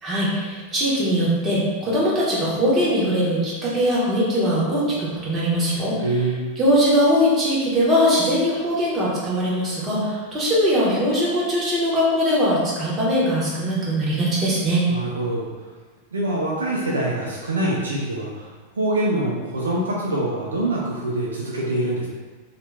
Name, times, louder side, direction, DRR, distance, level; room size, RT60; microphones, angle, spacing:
voice 1, 0.0-6.1 6.6-14.8, equal, 25° right, -6 dB, 1.0 m, -21 dB
voice 2, 6.0-6.5 14.9-15.7 16.1-18.5 18.8-22.1, right 1 dB, 70° right, -3 dB, 0.4 m, -24 dB
2.7 x 2.4 x 3.2 m, 1.4 s
figure-of-eight pair, 90°, 0 cm